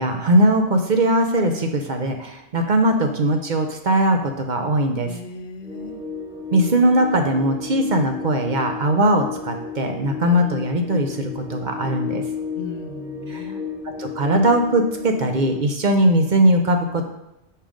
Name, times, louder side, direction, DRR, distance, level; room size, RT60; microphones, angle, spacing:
voice 1, 0.0-5.1 6.5-12.2 13.3-13.4 14.0-17.0, right 1 dB, 50° right, 5 dB, 0.7 m, -20 dB
voice 2, 5.0-6.0 12.6-13.7, left 2 dB, 80° left, 5 dB, 1.0 m, -37 dB
sound 1, 5.6-15.6, left 6 dB, 5° right, 0.3 m, -33 dB
5.6 x 5.1 x 5.0 m, 0.88 s
omnidirectional pair, 1.1 m